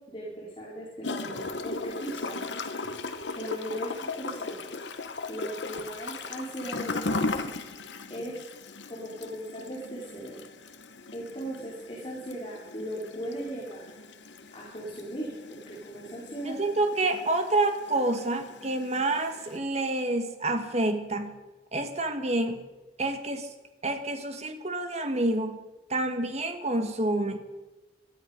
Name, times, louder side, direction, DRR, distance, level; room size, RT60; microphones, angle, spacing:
voice 1, 0.1-3.0 3.3-4.7 5.3-7.5 7.8-8.4 8.9-10.4 11.1-13.9 14.5-15.3 15.7-16.6, right 1 dB, 30° left, -5 dB, 3.2 m, -38 dB
Gurgling / Toilet flush, 1.0-19.6, left 3 dB, 80° left, 1.1 m, -38 dB
voice 2, 16.4-21.4 21.7-22.6 23.0-23.5 23.8-25.6 25.9-27.4, right 2 dB, 40° right, 7 dB, 1.5 m, -28 dB
18.5 x 12.5 x 5.3 m, 1.1 s
head